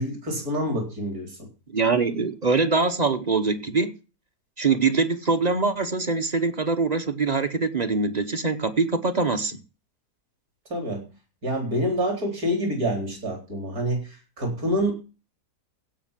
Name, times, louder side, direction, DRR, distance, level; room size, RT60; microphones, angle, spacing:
voice 1, 0.0-1.5 10.7-11.1 11.4-14.9, equal, 60° right, 4.6 m, -27 dB
voice 2, 1.7-3.9 4.6-9.6, right 4 dB, 35° right, 0.8 m, -23 dB
16.5 x 5.7 x 7.4 m
omnidirectional pair, 1.7 m